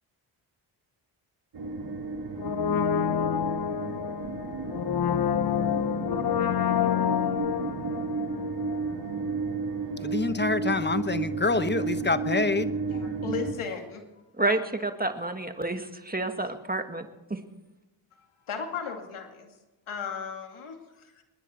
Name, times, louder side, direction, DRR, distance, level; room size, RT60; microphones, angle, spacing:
sound 1, 1.5-13.5, right 4 dB, 55° right, 2.4 m, -33 dB
Brass instrument, 2.4-9.2 9.5-9.6, left 9 dB, 45° left, 0.8 m, -28 dB
voice 1, 10.0-12.7, left 3 dB, 20° left, 12 dB, 1.1 m, -26 dB
voice 2, 12.9-14.0 18.5-19.5 19.9-20.8 21.2-21.3, left 6 dB, 75° left, 4 dB, 2.4 m, -35 dB
voice 3, 14.4-17.4, right 2 dB, 20° right, 7 dB, 1.7 m, -29 dB
28.0 x 10.0 x 4.5 m, 1.0 s
cardioid pair, 55°, 50 cm